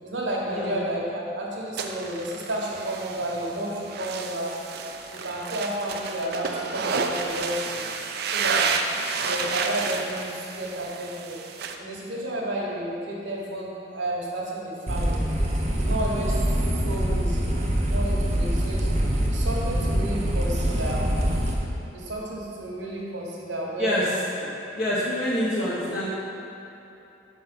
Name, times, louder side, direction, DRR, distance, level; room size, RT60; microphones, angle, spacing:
voice 1, 0.0-4.6 5.1-7.9 8.2-8.6 9.2-11.4 11.8-15.3 15.7-16.4 16.8-17.5 17.9-18.9 19.3-21.1 21.9-24.1, right 1 dB, 75° right, -4 dB, 1.3 m, -31 dB
sound 1, 1.8-11.8, right 5 dB, 55° right, 0.4 m, -30 dB
sound 2, 14.9-21.5, equal, 35° right, 0.8 m, -24 dB
voice 2, 23.8-24.1 24.4-26.1, left 1 dB, 50° left, -9 dB, 0.9 m, -26 dB
5.5 x 4.8 x 6.1 m, 2.9 s
head